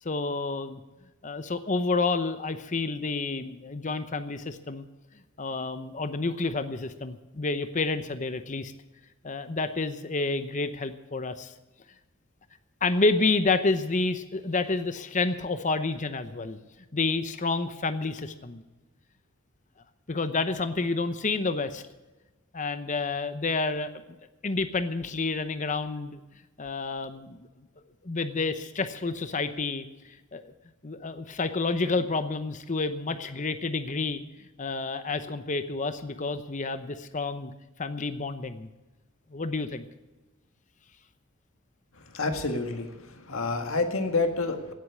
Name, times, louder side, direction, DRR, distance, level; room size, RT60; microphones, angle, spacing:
voice 1, 0.0-0.8 1.2-4.8 5.4-8.7 9.2-11.5 12.8-16.6 16.9-18.6 20.1-21.8 22.5-23.9 24.4-26.2 26.6-27.4 28.0-29.9 30.3-30.4 30.8-34.2 34.6-37.5 37.8-38.7 39.3-39.8, left 3 dB, 35° left, 10 dB, 0.8 m, -29 dB
voice 2, 41.9-44.7, left 3 dB, 70° left, 6 dB, 1.9 m, -29 dB
17.5 x 8.2 x 8.4 m, 1.1 s
head